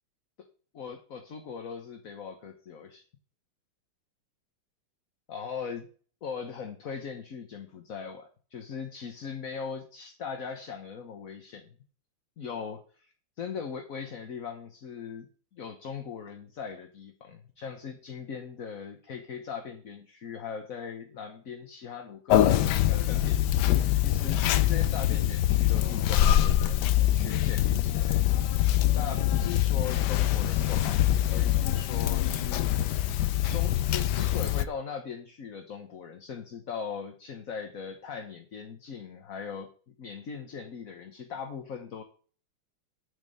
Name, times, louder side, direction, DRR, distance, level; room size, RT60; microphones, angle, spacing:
voice 1, 0.7-3.0 5.3-5.9 6.2-11.8 12.4-28.7 28.9-31.0 31.3-33.0 33.5-42.0, left 6 dB, 45° left, 5 dB, 1.3 m, -40 dB
Conversation, 22.3-34.7, left 13 dB, 70° left, 1.0 m, -24 dB
9.0 x 5.5 x 7.8 m, 0.40 s
omnidirectional pair, 2.4 m